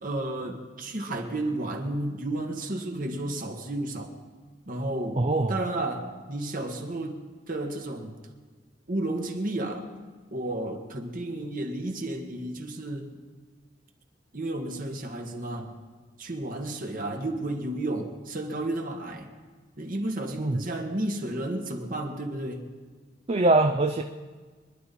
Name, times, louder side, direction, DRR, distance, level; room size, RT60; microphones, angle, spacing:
voice 1, 0.0-4.1 4.7-5.2 5.5-8.2 8.9-9.9 10.3-13.1 14.3-15.7 16.2-19.3 19.8-22.7, right 1 dB, 50° right, 3 dB, 1.7 m, -32 dB
voice 2, 5.2-5.6 20.4-20.6 23.3-24.0, right 2 dB, 35° right, 6 dB, 0.5 m, -22 dB
25.0 x 11.0 x 4.3 m, 1.4 s
head